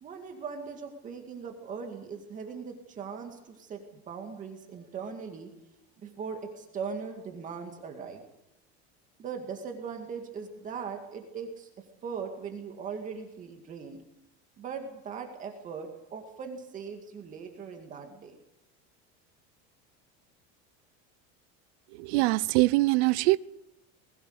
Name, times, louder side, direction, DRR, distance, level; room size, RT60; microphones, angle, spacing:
voice 1, 0.0-5.5 6.0-8.2 9.2-11.7 12.0-14.0 14.6-18.4, right 6 dB, 25° right, 2.2 m, -39 dB
voice 2, 22.0-23.4, right 21 dB, 80° right, 0.7 m, -23 dB
21.0 x 16.0 x 8.0 m
cardioid pair, 180°, 32 cm